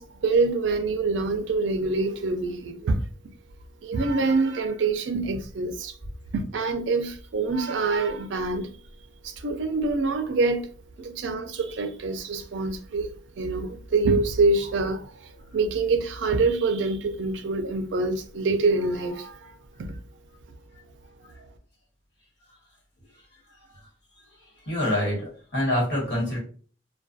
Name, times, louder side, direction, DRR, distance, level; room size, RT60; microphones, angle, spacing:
voice 1, 0.0-3.0 3.8-5.9 6.3-8.7 9.2-10.7 11.0-13.1 13.4-15.1 15.5-19.9, right 3 dB, 70° right, 0.4 m, -25 dB
voice 2, 24.7-26.4, left 1 dB, 60° left, 1.2 m, -26 dB
2.3 x 2.2 x 2.6 m
head